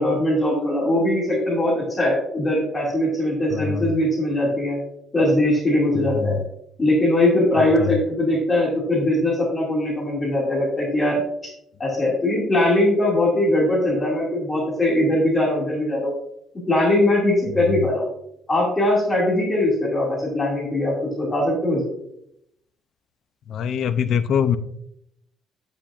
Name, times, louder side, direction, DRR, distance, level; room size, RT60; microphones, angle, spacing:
voice 1, 0.0-4.8 5.1-6.4 6.8-11.5 11.8-16.1 16.7-18.0 18.5-21.9, left 1 dB, 20° left, -4 dB, 2.2 m, -21 dB
voice 2, 3.5-3.9 6.0-6.4 7.6-7.9 23.5-24.6, left 7 dB, 55° left, 11 dB, 0.5 m, -24 dB
8.5 x 8.3 x 2.5 m, 0.75 s
cardioid pair, 175°, 0 cm